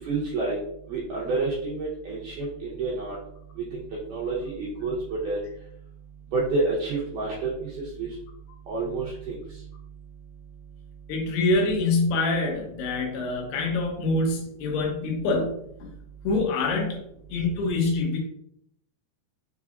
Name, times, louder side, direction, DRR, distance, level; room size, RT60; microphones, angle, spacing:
voice 1, 0.0-0.6 0.9-3.2 3.7-3.8 4.1-5.0 5.2-5.4 6.3-8.1 8.7-9.4, right 3 dB, 80° right, -5 dB, 1.9 m, -29 dB
voice 2, 11.1-15.9 16.2-17.0 17.3-18.2, left 3 dB, 80° left, 2 dB, 2.8 m, -25 dB
6.7 x 3.3 x 2.4 m, 0.73 s
omnidirectional pair, 4.8 m